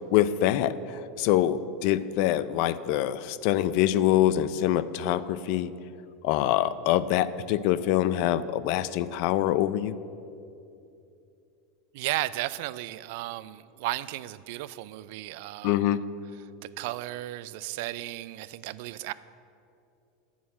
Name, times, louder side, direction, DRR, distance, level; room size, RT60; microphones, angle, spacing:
voice 1, 0.1-5.7 6.2-9.9 15.6-16.0, left 12 dB, 60° left, 16 dB, 0.4 m, -25 dB
voice 2, 11.9-16.0 16.8-19.1, right 17 dB, 65° right, 17 dB, 0.3 m, -34 dB
8.5 x 7.1 x 8.5 m, 2.7 s
supercardioid pair, 120°, 0 cm